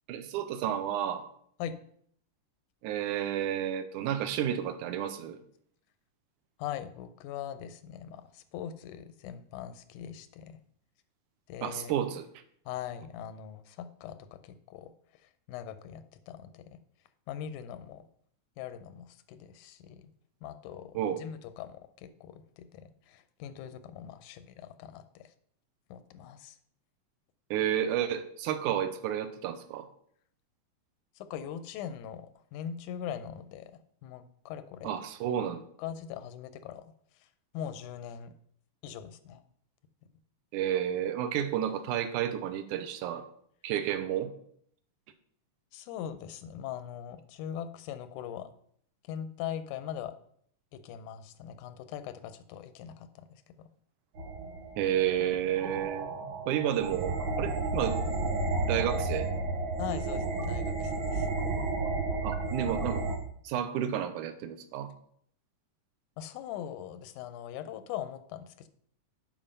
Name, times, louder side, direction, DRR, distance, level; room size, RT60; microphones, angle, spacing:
voice 1, 0.1-1.3 2.8-5.4 11.6-12.3 21.0-21.2 27.5-29.9 34.8-35.6 40.5-43.2 43.6-44.3 54.8-56.1 56.5-58.0 58.6-59.3 62.2-63.0 63.4-64.9, right 10 dB, 90° right, 10 dB, 2.2 m, -31 dB
voice 2, 6.6-10.6 11.5-11.9 12.7-14.9 15.2-16.8 17.3-18.1 18.6-20.1 20.4-25.2 25.9-26.6 31.2-33.7 34.0-34.9 35.8-36.8 37.5-38.3 38.8-39.4 45.7-48.5 49.0-50.1 50.7-53.7 59.8-61.3 66.2-68.7, left 9 dB, 90° left, 11 dB, 2.1 m, -41 dB
sound 1, 54.2-63.2, right 3 dB, 70° right, 2.5 m, -32 dB
7.2 x 5.1 x 5.4 m, 0.64 s
omnidirectional pair, 3.5 m